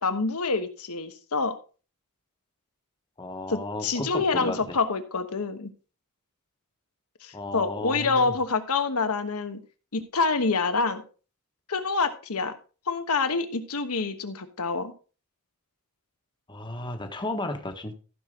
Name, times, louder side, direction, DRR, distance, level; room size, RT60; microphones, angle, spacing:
voice 1, 0.0-1.5 3.5-5.7 7.2-9.6 9.9-11.0 11.7-12.5 12.9-14.9, left 4 dB, 90° left, 9 dB, 1.2 m, -27 dB
voice 2, 3.2-4.8 7.3-8.4 16.5-17.9, left 2 dB, 20° left, 5 dB, 1.2 m, -34 dB
14.0 x 6.1 x 3.7 m, 0.36 s
head